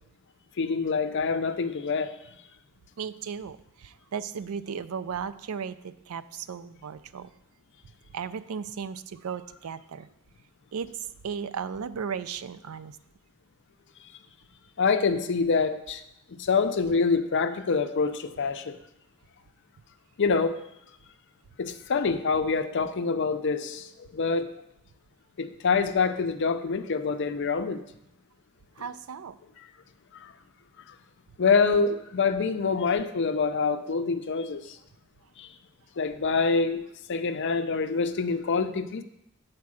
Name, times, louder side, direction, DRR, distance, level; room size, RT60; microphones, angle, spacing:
voice 1, 0.6-2.1 14.8-16.0 16.3-18.8 20.2-20.6 21.6-24.5 25.4-27.8 30.1-30.3 31.4-34.8 35.4-35.5 36.0-36.8 37.1-39.0, left 4 dB, 55° left, 9 dB, 0.5 m, -26 dB
voice 2, 3.0-7.3 8.1-10.1 10.7-13.0 28.8-29.4, right 6 dB, 80° right, 14 dB, 0.4 m, -36 dB
8.4 x 4.5 x 6.2 m, 0.82 s
head